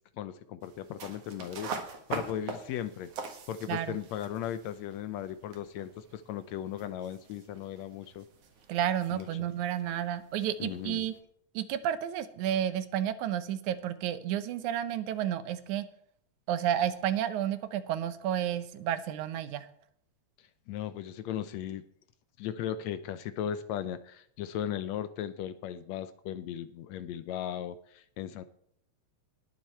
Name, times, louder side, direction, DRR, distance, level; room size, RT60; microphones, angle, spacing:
voice 1, 0.2-1.7 2.1-3.1 3.5-8.2 9.1-9.5 10.6-11.1 20.7-21.8 22.4-28.4, left 10 dB, 80° left, 12 dB, 1.8 m, -37 dB
sound 1, 0.6-11.2, right 5 dB, 60° right, 2.4 m, -44 dB
voice 2, 8.7-11.1 11.6-15.9 16.5-19.7, right 10 dB, 80° right, 12 dB, 2.2 m, -31 dB
19.5 x 7.5 x 4.4 m, 0.66 s
omnidirectional pair, 3.4 m